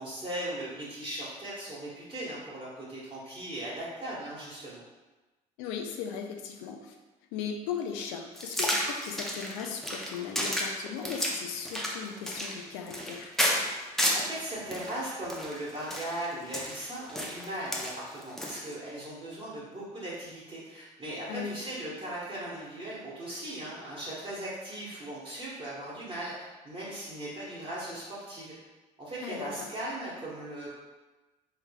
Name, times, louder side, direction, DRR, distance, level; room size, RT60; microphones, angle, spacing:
voice 1, 0.0-4.8 14.0-28.5 29.0-30.7, right 1 dB, 30° right, -8 dB, 1.2 m, -38 dB
voice 2, 5.6-7.0 7.3-13.3 21.3-21.6 29.2-29.7, left 7 dB, 70° left, 3 dB, 0.5 m, -37 dB
sound 1, 8.4-14.3 14.7-18.7, equal, ahead, 0.7 m, -31 dB
3.3 x 3.2 x 2.3 m, 1.2 s
hypercardioid pair, 55°, 20 cm